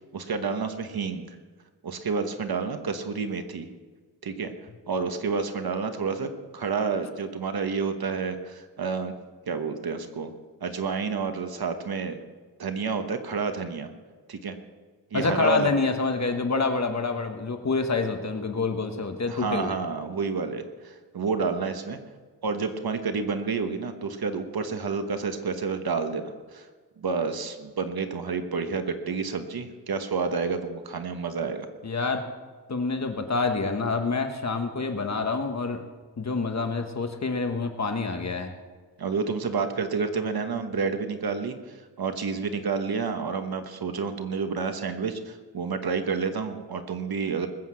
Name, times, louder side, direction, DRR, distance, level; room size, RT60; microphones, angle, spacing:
voice 1, 0.1-1.3 1.8-3.7 4.2-4.5 4.9-9.1 9.5-10.3 10.6-12.2 12.6-13.9 14.3-14.5 15.1-15.7 19.3-22.0 22.4-26.7 27.0-31.7 39.0-47.5, right 5 dB, 65° right, 8 dB, 1.2 m, -29 dB
voice 2, 15.1-19.8 31.8-32.2 32.7-35.8 36.2-38.5, left 4 dB, 45° left, 6 dB, 1.1 m, -27 dB
20.0 x 8.1 x 7.5 m, 1.5 s
wide cardioid pair, 165°, 39 cm